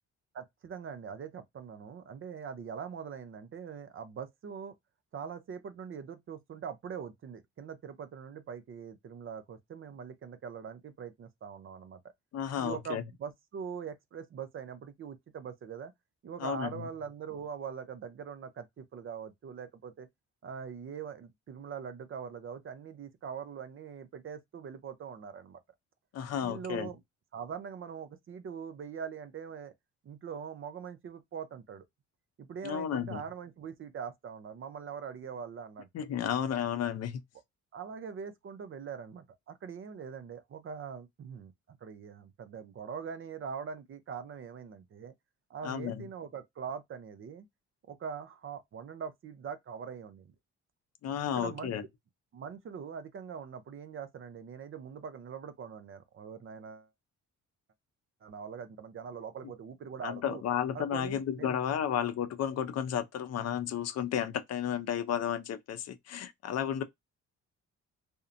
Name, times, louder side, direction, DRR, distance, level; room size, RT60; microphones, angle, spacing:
voice 1, 0.3-4.7 5.1-12.0 12.6-15.9 16.2-20.1 20.4-25.6 26.4-27.0 27.3-29.7 30.0-31.9 32.4-36.1 37.7-45.1 45.5-47.5 47.9-50.3 51.3-51.7 52.3-56.9 58.2-60.4 60.7-61.6, right 7 dB, 45° right, 0.5 m, -42 dB
voice 2, 12.3-13.0 16.4-16.8 26.1-26.9 32.6-33.2 35.9-37.2 45.6-46.0 51.0-51.8 60.0-66.8, left 9 dB, 55° left, 0.5 m, -32 dB
2.6 x 2.1 x 2.4 m
cardioid pair, 90°, 30 cm